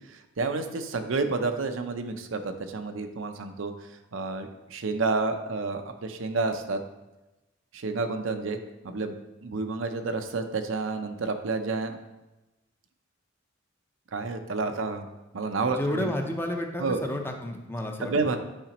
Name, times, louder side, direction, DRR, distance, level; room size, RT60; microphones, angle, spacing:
voice 1, 0.1-3.7 4.1-6.8 7.7-8.6 8.8-12.0 14.1-15.1 15.3-16.1 16.8-17.0 18.0-18.4, right 3 dB, 75° right, 6 dB, 0.6 m, -30 dB
voice 2, 15.8-18.3, left 1 dB, 10° left, 3 dB, 0.6 m, -31 dB
8.8 x 5.0 x 2.9 m, 1.0 s
head